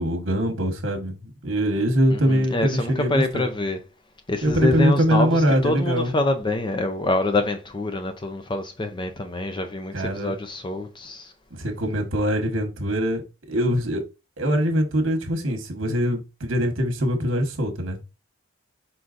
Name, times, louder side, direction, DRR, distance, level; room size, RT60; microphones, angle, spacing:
voice 1, 0.0-3.5 4.4-6.1 9.9-10.3 11.6-13.2 13.5-14.0 14.4-18.0, equal, 65° right, 1.2 m, -23 dB
voice 2, 2.1-3.8 4.3-11.3, left 2 dB, 25° left, 0.4 m, -26 dB
4.5 x 3.9 x 2.5 m
head